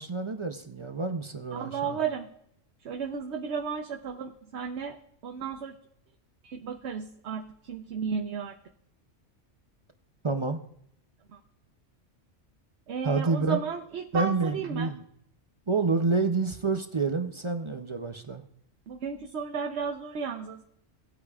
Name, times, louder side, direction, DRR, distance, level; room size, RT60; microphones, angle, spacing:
voice 1, 0.0-2.0 10.2-10.6 13.0-13.6 14.1-15.0 15.7-18.4, right 4 dB, 35° right, 6 dB, 0.5 m, -28 dB
voice 2, 1.5-2.3 2.8-5.8 6.4-8.5 11.3-11.4 12.9-14.9 18.9-20.6, right 6 dB, 70° right, 5 dB, 1.0 m, -33 dB
18.0 x 8.4 x 2.4 m, 0.70 s
omnidirectional pair, 1.2 m